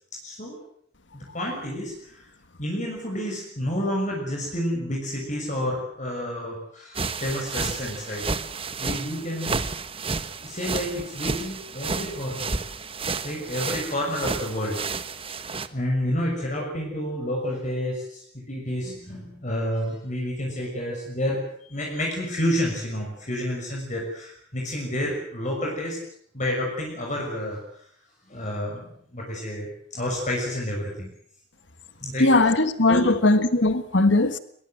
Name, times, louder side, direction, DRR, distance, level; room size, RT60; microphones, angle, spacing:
voice 1, 0.2-0.6 1.1-1.9 2.6-8.3 8.8-9.6 10.4-12.5 13.2-14.8 15.7-26.0 26.3-27.6 28.3-31.1 32.0-32.3 32.9-33.1, left 1 dB, 45° left, 6.3 m, -29 dB
sound 1, 6.9-15.7, right 4 dB, 30° right, 1.3 m, -31 dB
voice 2, 32.2-34.4, left 2 dB, 90° left, 1.6 m, -19 dB
22.5 x 21.5 x 7.8 m
head